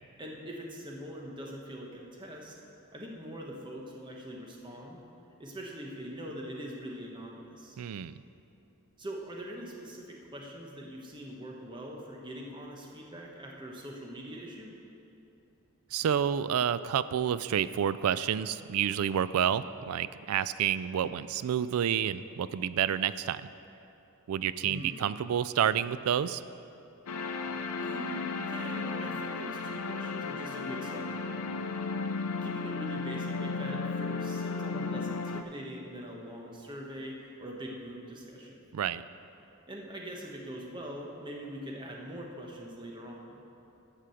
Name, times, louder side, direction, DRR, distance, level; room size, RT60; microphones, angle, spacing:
voice 1, 0.2-2.6 2.9-5.0 5.4-7.8 9.0-14.7 24.6-25.1 27.8-31.5 32.4-38.7 39.7-43.4, equal, 20° right, -1 dB, 1.0 m, -43 dB
voice 2, 7.8-8.1 15.9-23.4 24.3-26.4 38.7-39.0, right 9 dB, 80° right, 15 dB, 0.3 m, -29 dB
sound 1, 27.1-35.4, left 4 dB, 85° left, 0.6 m, -34 dB
12.5 x 4.9 x 7.6 m, 2.8 s
head